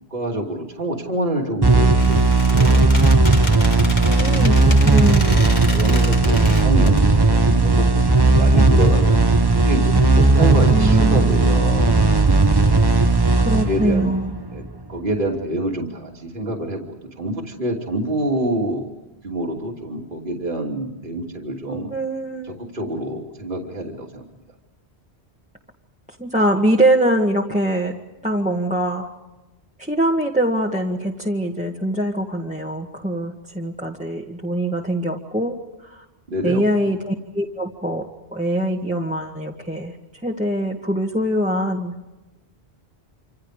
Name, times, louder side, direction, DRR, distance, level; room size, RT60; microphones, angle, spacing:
voice 1, 0.1-2.9 4.1-4.7 5.1-5.4 5.7-12.0 13.0-14.1 14.5-14.6 14.9-16.9 17.2-19.0 19.2-21.9 22.5-24.2 36.3-36.6, right 1 dB, 50° right, 0 dB, 3.0 m, -27 dB
sound 1, 1.6-14.9, right 3 dB, 20° right, 1.1 m, -16 dB
Squeak, 1.9-7.0, left 1 dB, 40° left, 2.5 m, -31 dB
voice 2, 4.1-5.3 10.7-11.3 13.4-14.3 21.9-22.6 26.2-28.0 28.2-29.1 29.8-36.0 36.4-38.1 38.3-39.9 40.2-41.9, right 1 dB, 5° right, -2 dB, 2.0 m, -23 dB
27.5 x 26.5 x 5.0 m, 1.0 s
omnidirectional pair, 1.1 m